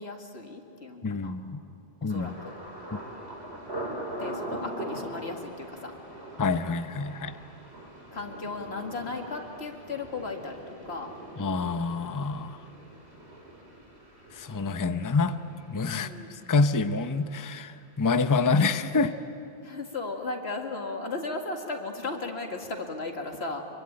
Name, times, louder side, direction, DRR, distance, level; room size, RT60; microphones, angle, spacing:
voice 1, 0.0-1.4 2.0-2.5 4.2-6.0 8.1-11.1 15.9-16.3 19.6-23.6, left 3 dB, 80° left, 3 dB, 2.4 m, -36 dB
voice 2, 1.0-1.6 2.0-2.3 6.4-7.3 11.4-12.6 14.3-15.4 15.7-16.1 16.5-19.1, left 4 dB, 20° left, 10 dB, 0.6 m, -27 dB
Thunder, 2.1-17.9 18.1-18.7 19.2-19.4, right 1 dB, 90° right, 4.9 m, -42 dB
25.0 x 23.5 x 8.8 m, 2.6 s
omnidirectional pair, 1.1 m